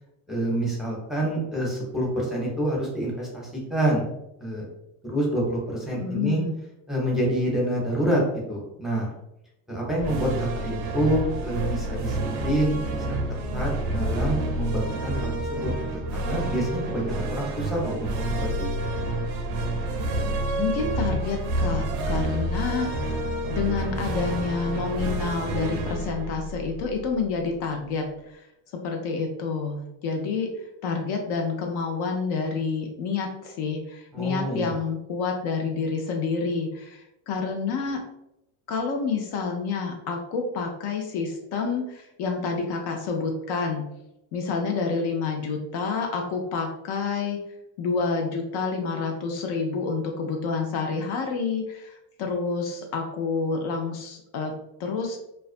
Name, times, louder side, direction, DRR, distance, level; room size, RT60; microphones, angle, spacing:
voice 1, 0.3-4.1 4.4-4.7 5.0-6.4 6.9-8.2 8.5-9.1 9.7-10.3 10.5-12.2 12.4-13.1 13.5-18.1 18.4-18.7 22.0-22.1 34.1-34.8, right 1 dB, ahead, -4 dB, 0.6 m, -27 dB
voice 2, 6.0-6.5 20.6-28.4 28.8-30.5 30.8-38.0 38.7-43.8 44.3-47.4 47.8-54.5 54.8-55.2, left 4 dB, 60° left, 3 dB, 0.5 m, -28 dB
sound 1, 10.0-27.4, right 1 dB, 90° right, 0.6 m, -29 dB
2.4 x 2.2 x 2.4 m, 0.85 s
supercardioid pair, 100°, 46 cm